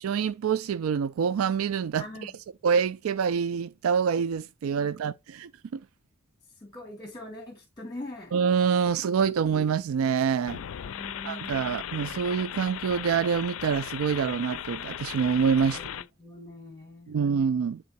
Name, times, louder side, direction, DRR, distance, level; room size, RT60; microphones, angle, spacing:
voice 1, 0.0-2.3 2.6-5.8 8.3-10.6 11.2-15.8 17.1-17.8, right 6 dB, 90° right, 0.4 m, -26 dB
voice 2, 6.6-8.3 10.9-11.9 15.7-17.2, left 1 dB, 20° left, 1.6 m, -43 dB
sound 1, 10.5-16.1, left 10 dB, 85° left, 0.4 m, -37 dB
9.3 x 3.7 x 4.0 m
head